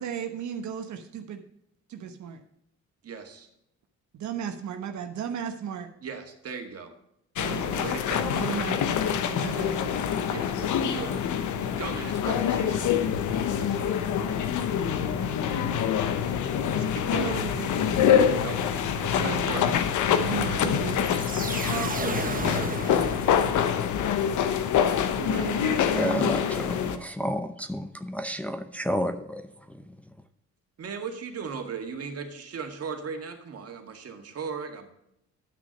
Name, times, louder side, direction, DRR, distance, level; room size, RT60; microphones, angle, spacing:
voice 1, 0.0-1.4 1.9-2.4 4.1-5.9 7.4-10.1 13.6-13.8 16.7-17.9 19.1-19.8 20.2-21.2 21.5-22.3 25.2-26.4, right 8 dB, 70° right, 1.1 m, -35 dB
voice 2, 3.0-3.5 6.0-6.9 7.7-8.6 10.3-11.2 11.5-12.9 18.4-18.7 19.0-19.7 30.8-34.9, right 5 dB, 50° right, 2.0 m, -37 dB
sound 1, 7.4-27.0, left 8 dB, 75° left, 1.0 m, -26 dB
sound 2, 21.0-23.8, right 5 dB, 30° right, 1.0 m, -34 dB
voice 3, 26.0-29.4, equal, 5° left, 0.7 m, -31 dB
10.5 x 6.2 x 5.3 m
cardioid pair, 90°, 30 cm